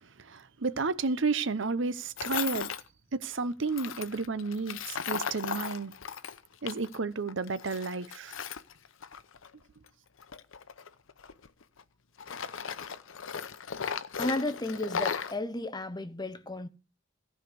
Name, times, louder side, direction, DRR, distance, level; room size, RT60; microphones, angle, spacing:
voice 1, 0.0-2.7 3.2-5.9 6.6-8.4, right 4 dB, 60° right, 0.8 m, -32 dB
Tools, 2.2-2.8 3.7-7.0 7.3-9.5 10.2-11.8 12.2-15.4, left 7 dB, 70° left, 0.7 m, -36 dB
voice 2, 14.2-16.7, left 2 dB, 20° left, 0.8 m, -33 dB
14.5 x 5.0 x 7.9 m
head